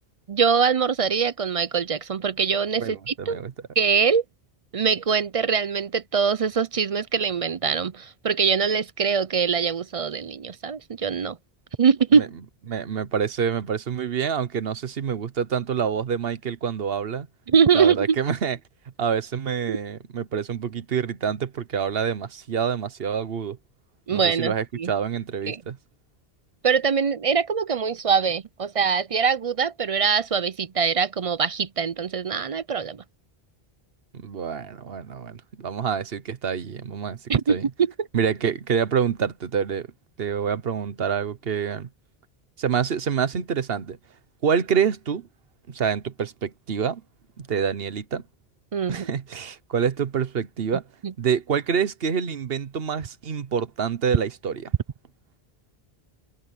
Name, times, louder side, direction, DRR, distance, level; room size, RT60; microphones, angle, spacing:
voice 1, 0.3-3.4 3.8-4.2 4.7-11.4 11.8-12.3 17.5-18.2 19.7-19.8 24.1-24.9 25.5-25.6 26.6-33.0 37.3-38.1 48.7-49.1 51.0-51.1, right 6 dB, 45° right, 0.5 m, -23 dB
voice 2, 2.8-3.5 12.1-12.3 12.7-17.3 17.7-18.6 19.0-23.6 24.1-25.8 34.1-37.2 37.5-37.7 38.1-39.9 40.2-41.9 42.6-44.0 44.4-45.3 45.7-47.0 47.4-48.2 48.9-50.8 51.2-54.7, right 7 dB, 70° right, 1.2 m, -27 dB
omnidirectional pair, 1.1 m